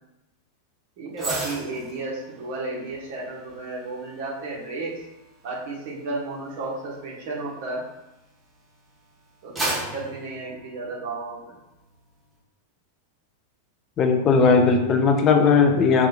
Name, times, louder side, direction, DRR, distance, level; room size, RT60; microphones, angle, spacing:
voice 1, 1.0-4.9 5.4-7.8 9.4-11.6, right 2 dB, 50° right, -5 dB, 1.4 m, -33 dB
sound 1, 1.1-8.5 9.0-11.4 11.7-12.0, right 2 dB, 15° right, 1.1 m, -36 dB
voice 2, 14.0-16.1, left 5 dB, 30° left, 4 dB, 0.6 m, -18 dB
4.3 x 3.4 x 2.5 m, 0.92 s
figure-of-eight pair, 90°, 0 cm